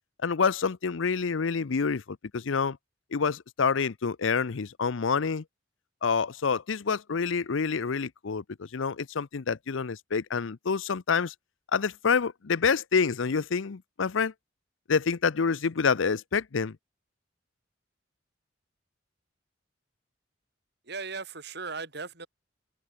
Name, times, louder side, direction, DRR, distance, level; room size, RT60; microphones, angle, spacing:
voice 1, 0.2-2.8 3.1-5.4 6.0-8.4 8.7-11.3 11.7-14.3 14.9-16.8, left 5 dB, 85° left, 0.6 m, -27 dB
voice 2, 20.9-22.3, right 4 dB, 60° right, 4.8 m, -37 dB
head